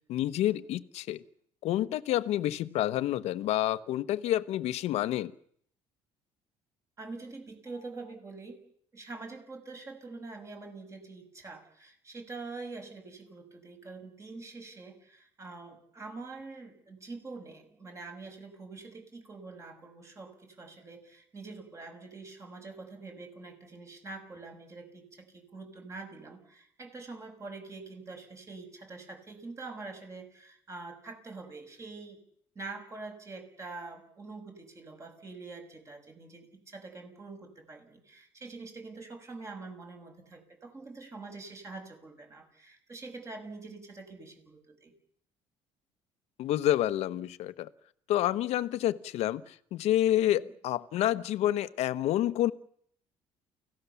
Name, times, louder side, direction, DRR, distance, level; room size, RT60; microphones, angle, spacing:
voice 1, 0.1-1.2 1.6-5.3 46.4-47.7 48.1-52.5, left 13 dB, 70° left, 12 dB, 1.0 m, -28 dB
voice 2, 7.0-8.6 8.9-32.2 32.5-44.9 50.3-50.5, right 3 dB, 25° right, 4 dB, 6.4 m, -45 dB
29.5 x 17.0 x 7.1 m, 0.65 s
cardioid pair, 125°, 12 cm